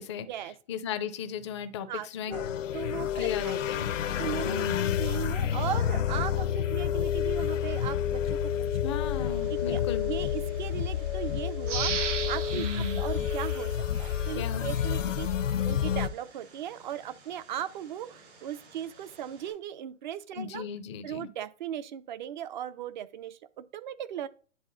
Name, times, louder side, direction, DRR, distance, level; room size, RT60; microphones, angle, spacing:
voice 1, 0.7-2.4 3.1-3.9 4.5-5.0 8.8-10.1 12.5-13.0 14.3-14.7 15.0-15.1 20.4-21.3, left 7 dB, 25° left, 0.4 m, -35 dB
voice 2, 1.9-2.5 2.7-3.8 4.2-8.9 9.7-11.9 12.3-13.7 14.0-20.6 21.0-24.3, right 11 dB, 40° right, 0.4 m, -37 dB
sound 1, 2.3-16.1, left 9 dB, 85° left, 0.7 m, -29 dB
Vehicle, 9.0-19.5, right 3 dB, 60° right, 3.0 m, -55 dB
sound 2, 11.6-14.3 14.8-14.9, right 6 dB, 75° right, 1.2 m, -35 dB
10.5 x 3.6 x 2.6 m
hypercardioid pair, 145°, 37 cm